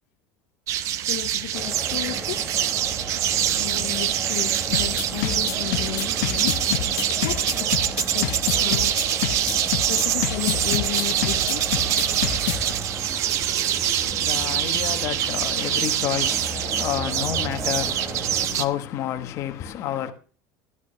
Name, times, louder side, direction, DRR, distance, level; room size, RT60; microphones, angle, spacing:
sound 1, 0.7-18.6, right 11 dB, 35° right, 0.6 m, -25 dB
voice 1, 1.1-2.5 3.6-6.6 7.2-7.7 8.1-9.1 9.7-11.7 14.7-14.8, left 20 dB, 65° left, 0.6 m, -34 dB
sound 2, 1.5-18.5, right 1 dB, 15° right, 1.1 m, -35 dB
sound 3, 4.7-12.7, left 13 dB, 85° left, 1.0 m, -27 dB
voice 2, 13.5-20.1, left 11 dB, 35° left, 1.1 m, -30 dB
12.5 x 11.0 x 3.2 m
cardioid pair, 180°, 9 cm